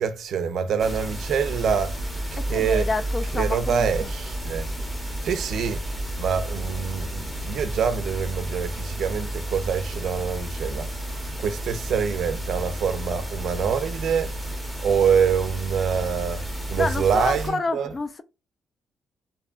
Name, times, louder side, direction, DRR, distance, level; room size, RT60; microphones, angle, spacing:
voice 1, 0.0-2.0 2.5-2.9 3.4-4.7 5.2-5.8 6.2-10.9 11.4-14.3 14.8-17.9, right 7 dB, 65° right, 0.4 m, -25 dB
sound 1, 0.8-17.5, right 1 dB, 5° left, 0.7 m, -31 dB
voice 2, 2.5-4.1 16.8-18.2, left 3 dB, 30° left, 0.3 m, -28 dB
2.6 x 2.2 x 2.3 m
cardioid pair, 90°, 0 cm